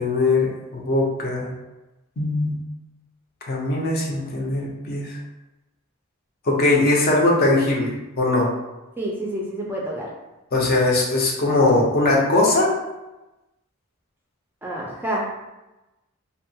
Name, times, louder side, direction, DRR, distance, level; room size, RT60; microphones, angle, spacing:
voice 1, 0.0-1.5 2.2-2.6 3.5-5.2 6.5-8.5 10.5-12.8, left 2 dB, 45° left, -2 dB, 0.6 m, -20 dB
voice 2, 9.0-10.1 14.6-15.3, right 1 dB, 10° right, -3 dB, 0.4 m, -28 dB
2.7 x 2.3 x 2.7 m, 1.0 s
head